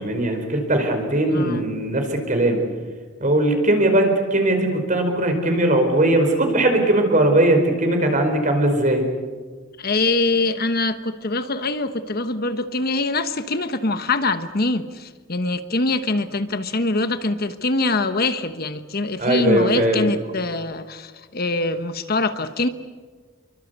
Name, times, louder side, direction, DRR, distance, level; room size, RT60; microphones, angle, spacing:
voice 1, 0.0-2.6 3.2-9.0 19.2-20.1, right 1 dB, 40° right, 5 dB, 4.8 m, -19 dB
voice 2, 1.3-1.7 9.8-22.7, left 2 dB, 45° left, 10 dB, 1.1 m, -24 dB
28.5 x 24.0 x 8.2 m, 1.5 s
head